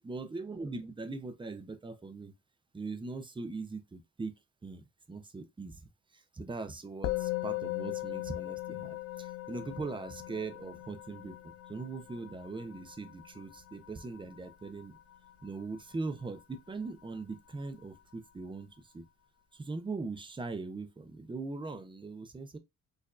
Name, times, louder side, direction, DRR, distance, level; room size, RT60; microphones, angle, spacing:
voice 1, 0.0-2.3 2.7-4.3 4.6-5.8 6.1-15.0 15.4-19.0 19.5-22.6, right 3 dB, 15° right, 0.6 m, -41 dB
Musical instrument, 7.0-16.6, left 18 dB, 50° left, 0.4 m, -39 dB
4.4 x 2.6 x 2.4 m
cardioid pair, 90°, 30 cm